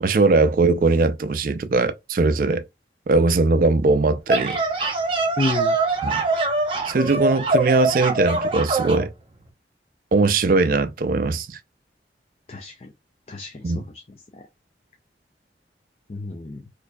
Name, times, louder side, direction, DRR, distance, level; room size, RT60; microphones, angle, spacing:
voice 1, 0.0-2.6 3.1-4.6 6.0-6.2 6.9-9.1 10.1-11.6 13.6-13.8, right 3 dB, 50° right, 0.4 m, -20 dB
sound 1, 4.0-9.0, right 2 dB, 30° right, 0.9 m, -23 dB
voice 2, 5.4-5.8 12.5-12.9 13.3-14.0 14.3-14.4 16.1-16.6, left 2 dB, 35° left, 0.5 m, -30 dB
4.3 x 2.7 x 2.3 m
head